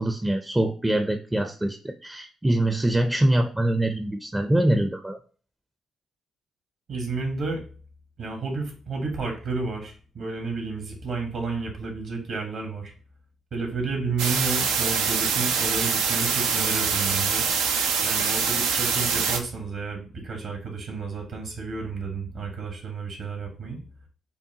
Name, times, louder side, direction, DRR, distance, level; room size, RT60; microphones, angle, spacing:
voice 1, 0.0-5.2, right 1 dB, 15° right, 6 dB, 0.5 m, -24 dB
voice 2, 6.9-7.6 8.2-12.9 13.5-17.5 18.0-23.8, right 4 dB, 65° right, 2 dB, 1.5 m, -31 dB
sound 1, 14.2-19.4, right 6 dB, 85° right, 0.4 m, -24 dB
5.4 x 2.3 x 2.8 m, 0.40 s
hypercardioid pair, 45°, 0 cm